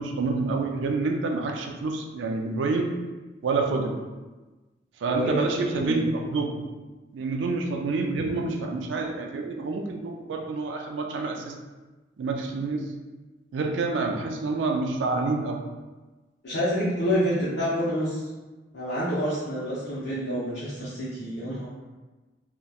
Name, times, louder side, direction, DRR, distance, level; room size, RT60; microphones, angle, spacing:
voice 1, 0.0-2.9 3.4-4.0 5.0-6.7 7.1-11.5 12.2-12.9 13.5-15.7, right 3 dB, 90° right, 3 dB, 0.3 m, -28 dB
voice 2, 5.1-6.0 16.4-18.2 18.7-21.7, equal, 75° left, -10 dB, 0.7 m, -28 dB
2.8 x 2.1 x 2.3 m, 1.2 s
head